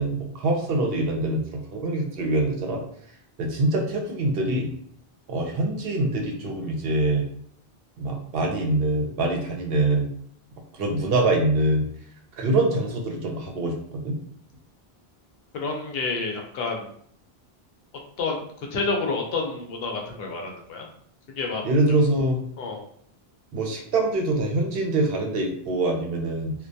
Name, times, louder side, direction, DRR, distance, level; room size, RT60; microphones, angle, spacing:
voice 1, 0.0-2.8 3.4-4.7 5.3-7.3 8.0-10.1 10.7-11.9 12.4-14.2 21.6-22.4 23.5-26.5, right 2 dB, 70° right, 1 dB, 0.8 m, -24 dB
voice 2, 15.5-16.9 18.2-18.4 18.7-20.9 21.3-21.6 22.6-22.8, left 4 dB, 70° left, 1 dB, 0.8 m, -29 dB
2.2 x 2.1 x 2.6 m, 0.63 s
omnidirectional pair, 1.0 m